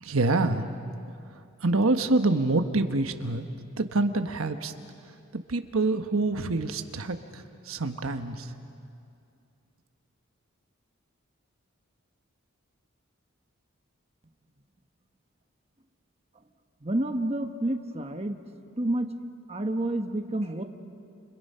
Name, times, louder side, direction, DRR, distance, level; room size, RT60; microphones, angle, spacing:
voice 1, 0.0-0.6 1.6-3.5 3.8-4.7 5.5-8.5, right 2 dB, 80° right, 7 dB, 1.2 m, -26 dB
voice 2, 16.8-18.4 18.8-19.1 19.5-20.6, right 1 dB, 30° right, 5 dB, 1.1 m, -29 dB
29.5 x 29.5 x 5.6 m, 2.5 s
head